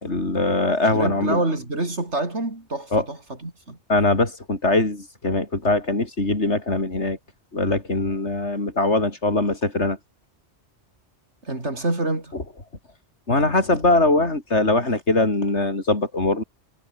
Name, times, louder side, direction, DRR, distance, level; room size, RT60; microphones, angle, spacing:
voice 1, 0.0-1.4 2.9-3.0 3.9-7.2 7.5-10.0 13.3-16.4, left 2 dB, 85° left, 4.7 m, -21 dB
voice 2, 0.9-3.8 11.4-12.4, right 2 dB, 85° right, 5.2 m, -27 dB
omnidirectional pair, 1.1 m